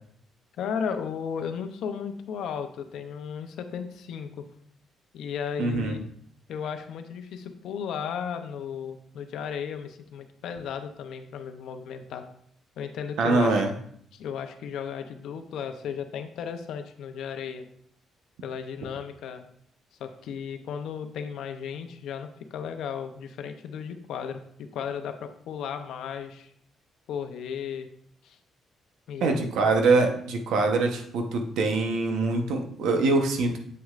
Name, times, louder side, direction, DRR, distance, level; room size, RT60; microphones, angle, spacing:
voice 1, 0.6-4.5 5.1-6.0 6.5-12.3 12.8-13.6 14.1-17.7 18.4-19.5 20.0-26.5 27.1-27.9 28.2-28.4 29.1-29.4, left 7 dB, 80° left, 7 dB, 0.6 m, -35 dB
voice 2, 5.6-6.0 13.2-13.7 29.2-33.6, right 3 dB, 85° right, 4 dB, 1.0 m, -24 dB
7.8 x 6.2 x 2.5 m, 0.65 s
cardioid pair, 90°, 0 cm